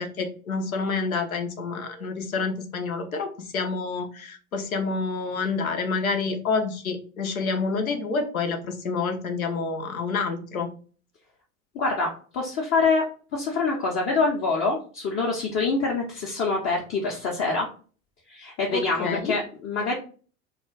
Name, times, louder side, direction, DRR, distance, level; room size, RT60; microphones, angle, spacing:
voice 1, 0.0-10.7 18.7-19.3, left 4 dB, 80° left, 5 dB, 0.6 m, -28 dB
voice 2, 11.7-13.0 13.3-17.7 18.3-19.9, left 3 dB, 30° left, -2 dB, 0.6 m, -25 dB
2.3 x 2.2 x 3.7 m, 0.39 s
figure-of-eight pair, 75°, 42 cm